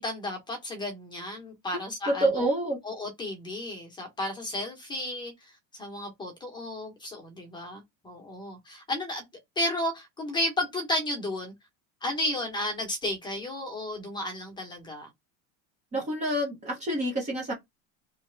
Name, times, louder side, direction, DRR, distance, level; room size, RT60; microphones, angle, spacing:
voice 1, 0.0-2.5 2.8-5.3 5.8-9.2 9.6-11.5 12.0-15.1, left 1 dB, 10° left, 1.1 m, -33 dB
voice 2, 2.1-2.8 15.9-17.5, right 1 dB, 15° right, 1.0 m, -27 dB
3.3 x 3.2 x 3.9 m
cardioid pair, 175°, 40 cm